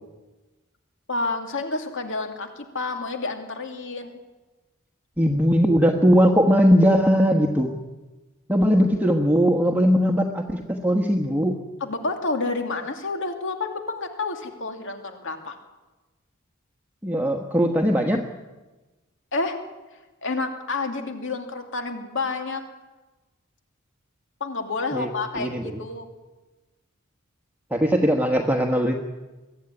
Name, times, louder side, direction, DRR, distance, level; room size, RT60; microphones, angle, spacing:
voice 1, 1.1-4.2 11.8-15.6 19.3-19.6 20.2-22.6 24.4-26.1, left 3 dB, 60° left, 5 dB, 2.6 m, -29 dB
voice 2, 5.2-7.7 8.5-11.6 17.0-18.3 24.9-25.1 25.3-25.8 27.7-29.0, equal, 10° right, 2 dB, 1.3 m, -19 dB
23.0 x 14.5 x 9.9 m, 1.2 s
head